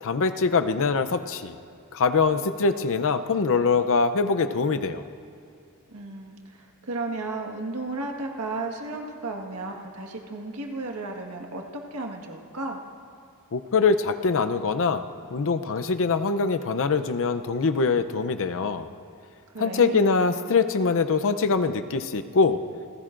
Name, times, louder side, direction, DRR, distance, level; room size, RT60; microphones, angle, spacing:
voice 1, 0.0-1.5 1.9-5.0 13.5-15.0 15.3-18.9 19.6-22.6, left 4 dB, 65° left, 10 dB, 0.6 m, -23 dB
voice 2, 5.9-12.8 19.5-20.1, right 2 dB, 80° right, 2 dB, 1.6 m, -34 dB
29.0 x 15.0 x 2.6 m, 2.5 s
head